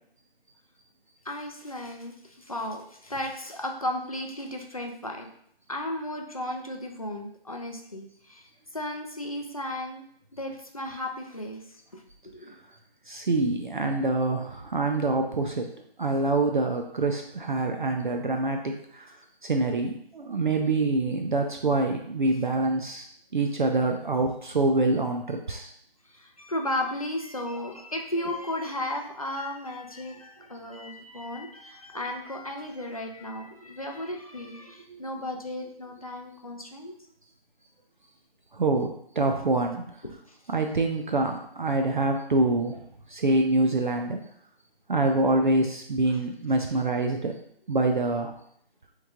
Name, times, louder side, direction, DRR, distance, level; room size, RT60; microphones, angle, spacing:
voice 1, 1.3-5.3 5.7-8.4 8.7-10.0 10.3-11.6 11.9-12.0 12.3-12.6 26.1-36.9 46.1-46.2, left 1 dB, 40° left, 2 dB, 0.4 m, -34 dB
voice 2, 13.1-15.7 16.0-19.2 19.4-25.7 34.9-35.0 38.5-40.0 40.5-42.8 43.1-44.2 44.9-47.3 47.7-48.3, right 2 dB, 55° right, 3 dB, 0.4 m, -26 dB
3.5 x 3.1 x 3.5 m, 0.68 s
figure-of-eight pair, 170°, 30 cm